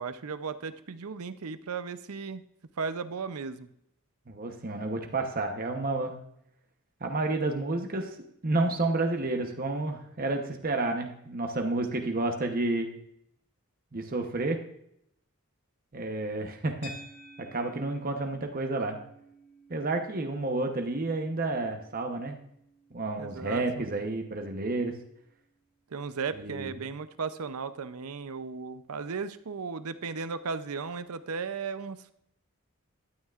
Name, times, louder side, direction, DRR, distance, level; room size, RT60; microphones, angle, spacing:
voice 1, 0.0-2.4 2.8-3.7 23.2-23.9 25.9-32.1, right 5 dB, 85° right, 12 dB, 0.6 m, -36 dB
voice 2, 4.3-6.2 7.0-12.9 13.9-14.6 15.9-16.9 17.4-19.0 19.7-22.4 22.9-24.9 26.4-26.7, right 2 dB, 40° right, 4 dB, 1.0 m, -30 dB
sound 1, 16.8-25.3, equal, 80° left, 1.9 m, -54 dB
12.5 x 9.2 x 2.5 m, 0.74 s
head